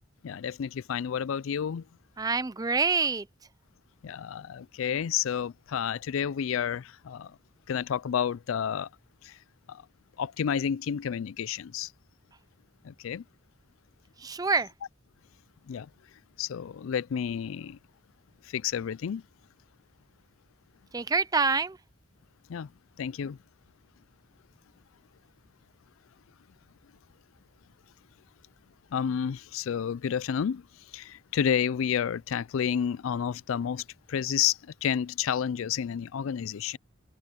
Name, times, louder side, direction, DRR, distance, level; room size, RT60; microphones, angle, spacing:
voice 1, 0.2-1.8 4.0-7.3 7.7-8.9 9.2-9.3 9.7-9.8 10.2-11.9 12.8-13.2 15.7-15.9 16.4-17.8 18.5-19.2 22.5-22.7 23.0-23.4 28.9-30.6 30.9-33.8 34.1-36.8, left 8 dB, 75° left, 0.4 m, -30 dB
voice 2, 2.2-3.2 14.2-14.7 20.9-21.8, right 4 dB, 20° right, 0.5 m, -26 dB
open air
head